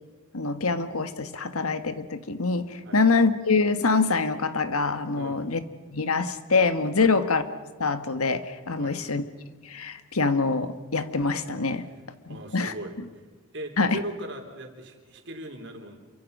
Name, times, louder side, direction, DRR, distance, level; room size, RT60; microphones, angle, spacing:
voice 1, 0.3-5.6 5.9-7.4 7.8-9.2 9.6-11.9 12.3-12.7 13.8-14.0, left 4 dB, 85° left, 10 dB, 1.5 m, -25 dB
voice 2, 12.3-13.3 13.5-16.0, right 1 dB, 55° right, 4 dB, 3.5 m, -39 dB
28.5 x 24.5 x 5.5 m, 1.3 s
head